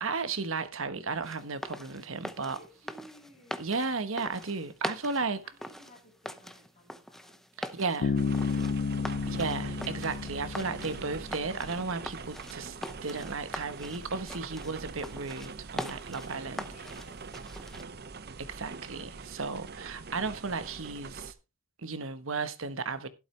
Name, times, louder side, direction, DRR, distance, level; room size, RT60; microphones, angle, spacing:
voice 1, 0.0-2.6 3.6-5.4 7.7-8.1 9.3-16.6 18.4-21.3 21.8-23.1, right 4 dB, 70° right, 1.2 m, -34 dB
sound 1, 1.2-17.8, equal, ahead, 0.7 m, -43 dB
voice 2, 2.5-3.9 5.4-9.6 16.2-18.1, equal, 35° left, 7.3 m, -58 dB
Bass guitar, 8.0-11.7, left 4 dB, 55° left, 0.5 m, -32 dB
sound 2, 8.2-21.3, right 4 dB, 45° right, 0.7 m, -44 dB
12.5 x 11.5 x 3.3 m
head